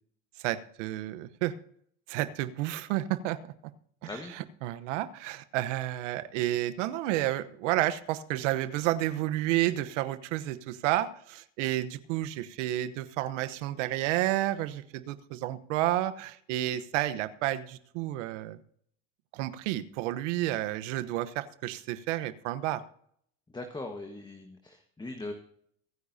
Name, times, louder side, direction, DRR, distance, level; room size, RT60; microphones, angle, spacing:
voice 1, 0.4-1.5 2.1-3.4 4.0-18.6 19.3-22.8, right 14 dB, 75° right, 12 dB, 1.1 m, -31 dB
voice 2, 23.5-25.3, left 2 dB, 10° left, 5 dB, 1.4 m, -40 dB
24.0 x 10.0 x 2.8 m, 0.65 s
supercardioid pair, 105°, 37 cm